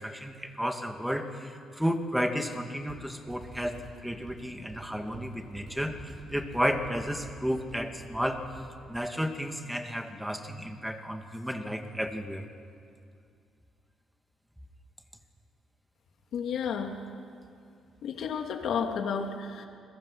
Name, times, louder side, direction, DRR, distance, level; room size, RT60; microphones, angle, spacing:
voice 1, 0.0-8.4 8.9-12.4, equal, 5° right, 5 dB, 2.3 m, -32 dB
sound 1, 2.9-8.9, right 2 dB, 50° right, 6.9 m, -48 dB
voice 2, 16.3-16.9 18.0-19.7, left 6 dB, 70° left, 3 dB, 2.9 m, -31 dB
29.5 x 22.0 x 5.8 m, 2.4 s
cardioid pair, 90°, 0 cm